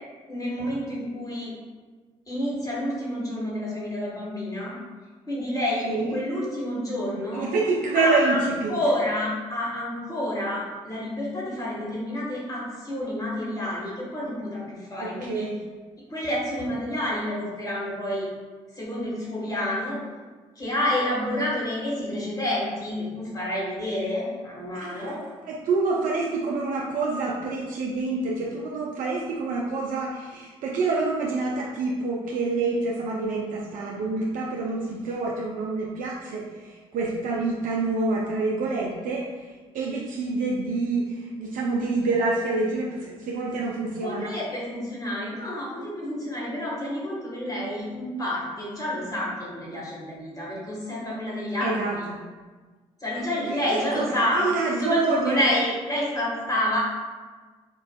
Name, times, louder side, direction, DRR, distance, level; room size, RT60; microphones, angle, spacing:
voice 1, 0.3-1.5 2.3-4.7 5.3-7.5 7.9-15.5 16.1-18.3 18.7-20.0 20.5-25.2 44.0-52.0 53.0-56.8, left 1 dB, 25° left, -5 dB, 1.5 m, -29 dB
voice 2, 7.3-8.8 15.0-15.6 24.7-25.2 25.4-39.5 39.7-44.3 51.6-52.2 53.1-54.0 54.3-55.4, right 3 dB, 60° right, -3 dB, 0.5 m, -27 dB
4.4 x 2.4 x 2.3 m, 1.4 s
hypercardioid pair, 50°, 15 cm